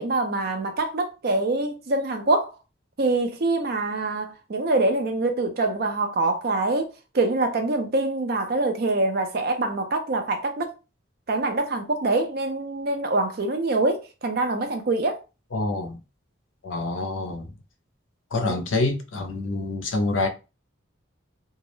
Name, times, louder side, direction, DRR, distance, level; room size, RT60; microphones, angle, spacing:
voice 1, 0.0-2.5 3.0-10.7 11.3-15.2 18.5-18.6, right 2 dB, 50° right, 0.4 m, -25 dB
voice 2, 15.5-16.0 16.6-17.5 18.3-20.3, left 2 dB, 70° left, 0.5 m, -26 dB
2.3 x 2.0 x 3.0 m
head